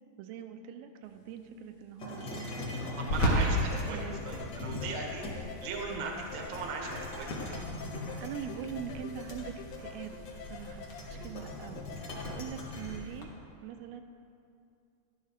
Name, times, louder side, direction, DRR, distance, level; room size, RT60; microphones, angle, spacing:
voice 1, 0.2-3.2 3.9-4.2 7.5-7.7 8.2-10.2 10.5-13.3 13.6-14.0, right 9 dB, 85° right, 7 dB, 2.5 m, -43 dB
sound 1, 1.0-13.2, equal, 60° left, 1.5 m, -38 dB
sound 2, 2.0-5.7 6.3-13.0, left 2 dB, 40° left, 1.7 m, -41 dB
voice 2, 3.0-7.3, right 4 dB, 60° right, 0 dB, 1.3 m, -38 dB
sound 3, 3.6-12.3, left 6 dB, 80° left, 2.4 m, -47 dB
12.0 x 12.0 x 3.5 m, 2.6 s
omnidirectional pair, 4.3 m